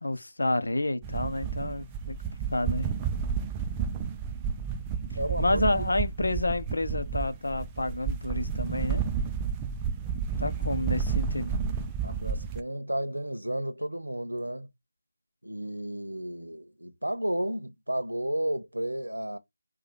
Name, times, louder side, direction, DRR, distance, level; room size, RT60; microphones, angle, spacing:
voice 1, 0.0-2.2 2.5-2.9 5.4-9.0 10.4-11.5, left 2 dB, 70° left, 0.8 m, -29 dB
sound 1, 1.0-12.6, right 6 dB, 10° right, 0.4 m, -31 dB
voice 2, 5.2-5.6 12.0-14.7 15.4-19.4, right 1 dB, 90° right, 0.9 m, -32 dB
4.8 x 2.4 x 4.1 m
figure-of-eight pair, 160°, 0 cm